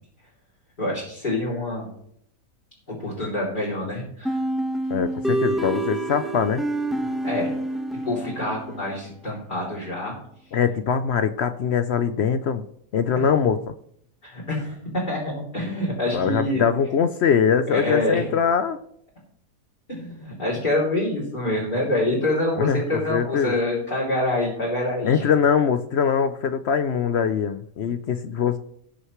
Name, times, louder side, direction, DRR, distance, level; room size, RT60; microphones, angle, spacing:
voice 1, 0.8-1.9 2.9-4.4 7.0-7.5 8.0-10.1 13.1-13.3 14.2-16.6 17.7-18.3 19.9-25.2 27.8-27.9, left 1 dB, 30° left, -7 dB, 3.1 m, -26 dB
sound 1, 4.2-8.9, right 1 dB, ahead, 0.9 m, -27 dB
voice 2, 4.9-6.6 10.5-12.6 12.9-13.6 16.1-18.8 22.6-23.5 25.0-28.6, left 7 dB, 70° left, 10 dB, 0.6 m, -22 dB
18.5 x 6.5 x 3.1 m, 0.71 s
omnidirectional pair, 1.7 m